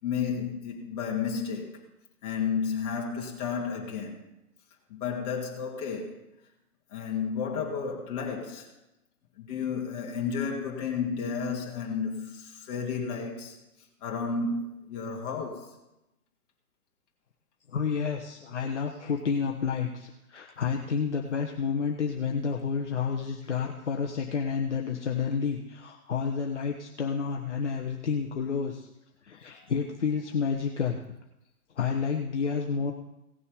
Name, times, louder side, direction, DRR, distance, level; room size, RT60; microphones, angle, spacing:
voice 1, 0.0-1.8 2.2-4.2 4.9-6.3 6.9-8.7 9.4-13.6 14.0-15.8, left 6 dB, 25° left, 2.4 m, -32 dB
voice 2, 17.7-28.9 29.2-31.0 31.8-32.9, left 6 dB, 50° left, 1.3 m, -30 dB
17.5 x 6.9 x 5.1 m
figure-of-eight pair, 135°, 46 cm